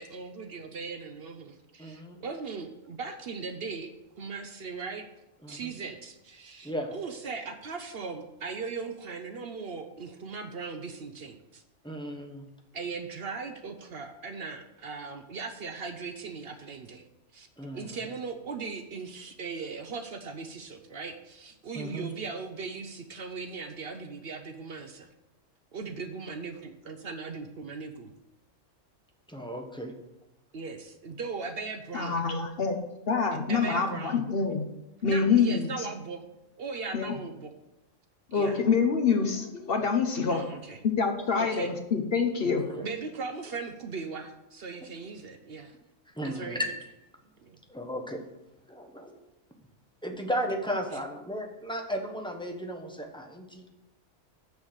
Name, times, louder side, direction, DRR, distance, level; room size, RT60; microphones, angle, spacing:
voice 1, 0.0-5.1 5.5-11.6 12.7-17.0 17.3-17.5 17.7-25.1 25.7-28.1 30.5-32.2 33.5-34.2 35.0-36.2 36.6-37.5 38.3-38.6 40.3-40.8 41.4-41.7 42.8-45.7 46.2-46.6 47.4-47.6, right 4 dB, 55° right, 7 dB, 0.8 m, -38 dB
voice 2, 1.8-2.2 5.4-5.7 6.6-6.9 11.8-12.5 17.6-18.0 21.7-22.1 29.3-29.9 42.4-42.9 46.1-46.7 47.7-48.2 48.7-49.2 50.0-53.6, equal, 5° left, 2 dB, 0.9 m, -35 dB
voice 3, 31.9-32.8 33.1-34.7 35.0-35.9 36.9-37.1 38.3-40.4 40.8-42.6, left 5 dB, 55° left, 6 dB, 1.0 m, -26 dB
6.8 x 6.4 x 6.3 m, 0.98 s
omnidirectional pair, 1.3 m